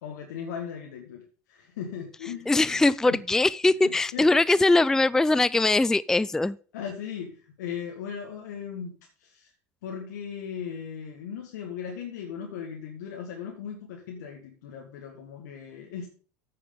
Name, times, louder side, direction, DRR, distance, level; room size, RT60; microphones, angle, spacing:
voice 1, 0.0-2.6 3.1-3.2 3.8-4.3 6.7-9.5 9.8-16.1, left 7 dB, 80° left, 1.8 m, -38 dB
voice 2, 2.5-6.6, left 2 dB, 5° left, 0.3 m, -21 dB
9.0 x 6.8 x 5.3 m
hypercardioid pair, 85°, 9 cm